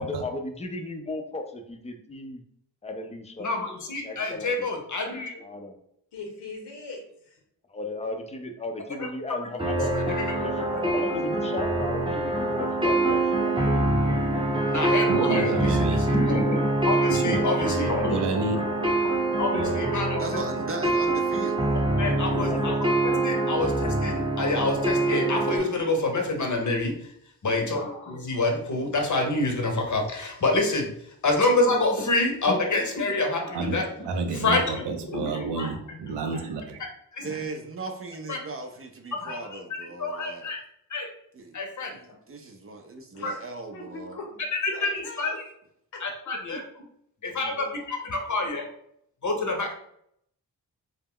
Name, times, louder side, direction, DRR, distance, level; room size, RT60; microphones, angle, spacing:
voice 1, 0.0-2.4 2.8-3.5 4.0-4.7 5.4-5.7 7.7-9.9 10.4-13.9 14.8-15.1 17.8-18.4 19.8-20.0 22.5-23.0 27.5-27.9 35.2-35.5 46.5-46.6 47.3-47.7 48.3-48.5, left 2 dB, 15° left, 5 dB, 0.5 m, -36 dB
voice 2, 3.4-5.4 9.9-11.0 14.7-15.5 16.1-18.2 18.5-18.9 19.4-20.2 22.0-22.8 23.0-26.9 27.4-30.9 31.2-33.8 34.3-36.4 37.1-37.3 38.3-38.4 39.2-39.4 40.0-40.6 40.9-41.1 41.5-41.9 43.2-43.3 44.6-45.3 46.0-46.6 47.2-48.7 49.2-49.7, left 2 dB, 45° left, 3 dB, 0.8 m, -27 dB
voice 3, 6.1-7.4 43.1-43.4 43.7-44.3 44.7-45.4 45.9-46.0, left 3 dB, 80° left, 0 dB, 0.9 m, -40 dB
sound 1, 9.6-25.6, right 2 dB, 10° right, 0.8 m, -25 dB
voice 4, 15.1-16.0 17.1-17.5 18.1-18.6 19.5-20.1 22.3-22.7 33.5-36.8, right 4 dB, 85° right, 5 dB, 0.5 m, -30 dB
voice 5, 20.2-21.8 37.2-40.5 41.3-41.6 41.9-44.2, right 3 dB, 35° right, 5 dB, 0.5 m, -38 dB
2.2 x 2.0 x 3.6 m, 0.70 s
cardioid pair, 45°, 41 cm